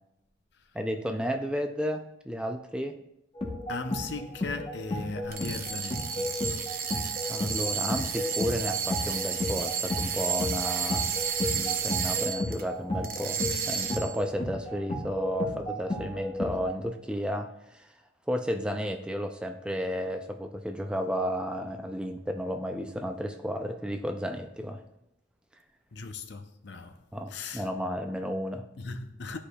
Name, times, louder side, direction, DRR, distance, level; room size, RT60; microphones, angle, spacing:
voice 1, 0.7-3.0 7.3-11.1 11.5-17.9 18.3-24.8 27.1-28.7, equal, 5° right, 0.3 m, -33 dB
sound 1, 3.3-16.7, left 1 dB, 30° left, 0.8 m, -34 dB
voice 2, 3.7-6.4 25.9-27.0 27.3-27.7 28.8-29.4, left 4 dB, 60° left, 0.6 m, -37 dB
sound 2, 5.2-12.6 13.0-14.2, right 7 dB, 50° right, 0.6 m, -32 dB
12.0 x 4.9 x 2.3 m
head